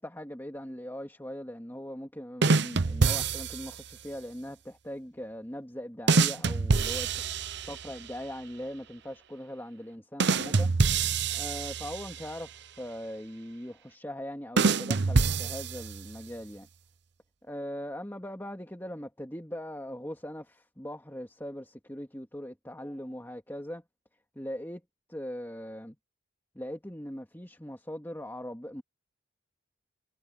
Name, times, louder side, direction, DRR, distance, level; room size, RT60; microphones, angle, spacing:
voice 1, 0.0-7.1 7.6-10.7 11.3-16.7 17.4-23.8 24.3-24.8 25.1-26.0 26.5-28.8, equal, 10° left, 2.6 m, -40 dB
sound 1, 2.4-3.8 6.1-8.0 10.2-12.3 14.6-16.2, right 4 dB, 60° right, 0.8 m, -26 dB
head